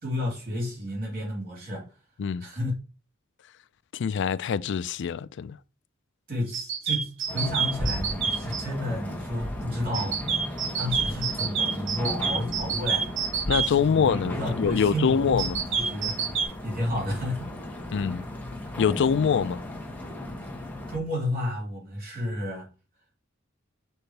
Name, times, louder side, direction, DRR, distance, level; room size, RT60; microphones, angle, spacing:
voice 1, 0.0-1.8 2.4-2.7 6.3-10.2 10.8-16.1 16.6-17.5 20.9-22.7, left 1 dB, 45° right, 2.7 m, -32 dB
voice 2, 3.9-5.6 13.5-15.6 17.9-18.2 18.8-19.6, left 6 dB, 60° left, 0.4 m, -24 dB
sound 1, 6.5-8.6 9.9-13.7 15.4-16.4, right 6 dB, 65° right, 1.4 m, -27 dB
sound 2, 7.3-21.0, left 1 dB, 10° left, 1.3 m, -35 dB
7.0 x 3.8 x 4.5 m
head